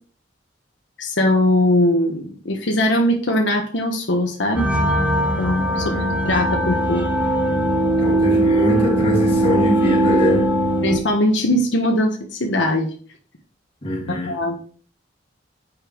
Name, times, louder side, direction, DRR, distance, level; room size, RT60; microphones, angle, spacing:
voice 1, 1.0-4.7 5.4-5.9 6.2-7.1 10.8-12.9 14.3-14.6, left 1 dB, 75° left, 1.2 m, -20 dB
sound 1, 4.5-11.0, right 1 dB, 10° right, 1.4 m, -19 dB
voice 2, 5.7-6.1 8.0-10.6 13.8-14.4, left 1 dB, 30° left, 2.2 m, -23 dB
7.0 x 5.3 x 4.5 m
head